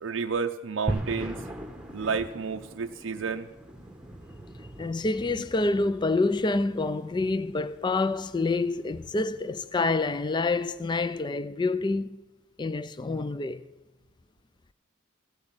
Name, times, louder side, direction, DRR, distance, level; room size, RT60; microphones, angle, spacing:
voice 1, 0.0-1.4 1.9-3.5, right 5 dB, 85° right, 0.5 m, -31 dB
sound 1, 0.9-11.1, right 1 dB, 5° right, 1.1 m, -41 dB
voice 2, 4.8-12.2 12.6-13.6, left 3 dB, 25° left, 0.4 m, -27 dB
15.5 x 8.2 x 8.7 m
head